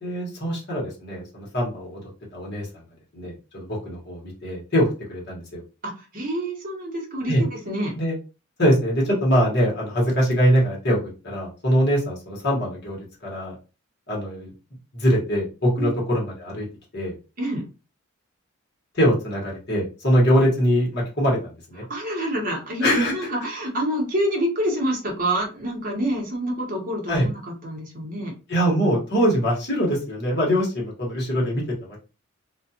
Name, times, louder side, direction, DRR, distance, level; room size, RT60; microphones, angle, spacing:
voice 1, 0.0-2.0 2.3-2.7 3.1-5.6 7.3-7.4 8.0-8.1 8.6-11.0 11.2-13.5 14.1-14.5 14.9-16.6 16.9-17.1 18.9-21.4 21.7-21.8 22.8-23.1 27.1-27.3 28.5-32.0, equal, 50° left, -4 dB, 1.2 m, -23 dB
voice 2, 5.8-7.9 15.8-15.9 17.4-17.6 21.9-28.3, right 1 dB, 40° right, 0 dB, 0.9 m, -27 dB
2.5 x 2.3 x 2.8 m, 0.32 s
head